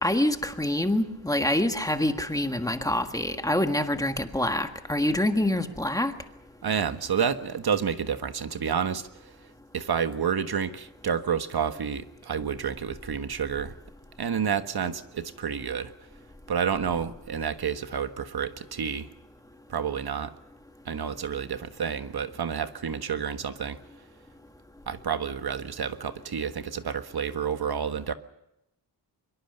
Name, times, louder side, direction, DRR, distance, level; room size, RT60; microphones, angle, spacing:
voice 1, 0.0-6.1, left 1 dB, 10° left, 6 dB, 1.5 m, -26 dB
voice 2, 6.6-9.3 9.7-13.8 14.2-15.9 16.5-19.1 19.7-20.3 20.8-23.8 24.9-28.1, right 7 dB, 55° right, 10 dB, 1.4 m, -29 dB
24.0 x 23.0 x 6.7 m, 0.87 s
wide cardioid pair, 170°, 44 cm